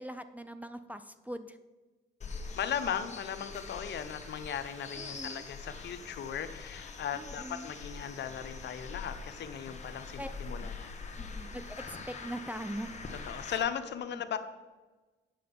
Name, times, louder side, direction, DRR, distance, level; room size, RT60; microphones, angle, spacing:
voice 1, 0.0-1.6 4.9-5.5 7.1-7.7 10.2-10.3 10.6-10.7 11.2-12.9 14.1-14.2, right 1 dB, 10° right, 11 dB, 0.5 m, -42 dB
sound 1, 2.2-13.6, left 4 dB, 35° left, 1.4 m, -44 dB
voice 2, 2.5-10.9 13.2-14.4, left 8 dB, 60° left, 10 dB, 0.8 m, -37 dB
8.8 x 6.7 x 5.3 m, 1.2 s
cardioid pair, 90°, 20 cm